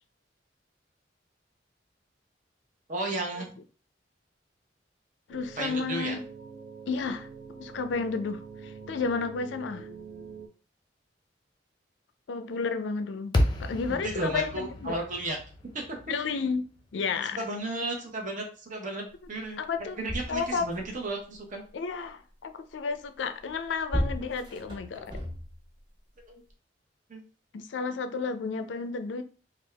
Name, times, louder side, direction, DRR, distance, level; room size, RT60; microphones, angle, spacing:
voice 1, 2.9-3.5 5.6-6.2 13.9-15.4 17.4-19.0 19.3-19.6 20.0-21.6 26.2-26.4 27.1-27.2, right 2 dB, 45° right, 0.9 m, -33 dB
voice 2, 5.3-6.2 6.9-7.3 7.6-9.9 12.3-15.0 16.1-16.7 16.9-17.4 19.6-20.0 20.3-20.6 21.7-25.2 27.5-29.2, left 4 dB, 85° left, 0.4 m, -32 dB
sound 1, 5.3-10.5, right 5 dB, 60° right, 0.5 m, -45 dB
sound 2, 13.3-17.6, left 1 dB, 25° left, 0.6 m, -32 dB
sound 3, 19.4-19.5 19.7-21.1 23.4-25.8 26.5-26.6, equal, 30° right, 1.3 m, -35 dB
3.4 x 2.4 x 3.3 m
head